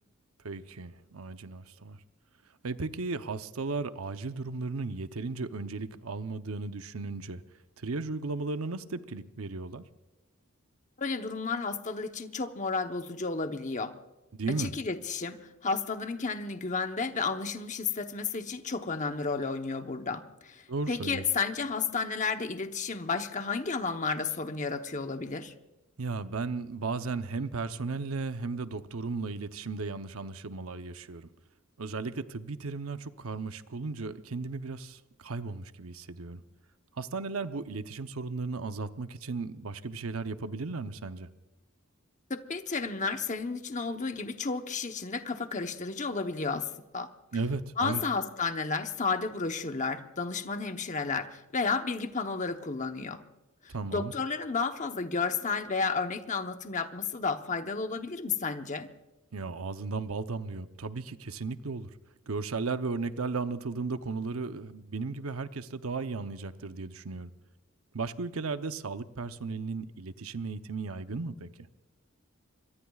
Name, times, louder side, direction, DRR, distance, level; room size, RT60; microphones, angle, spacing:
voice 1, 0.4-2.0 2.6-7.4 7.8-9.8 14.3-14.7 20.7-21.2 26.0-31.3 31.8-36.4 37.0-41.3 47.3-48.0 53.7-54.1 59.3-61.9 62.3-67.3 67.9-71.5, right 3 dB, 90° right, 0.8 m, -35 dB
voice 2, 11.0-13.9 14.5-25.5 42.3-47.1 47.8-53.2 53.6-58.9, left 4 dB, 35° left, 0.9 m, -32 dB
25.5 x 23.0 x 2.4 m
head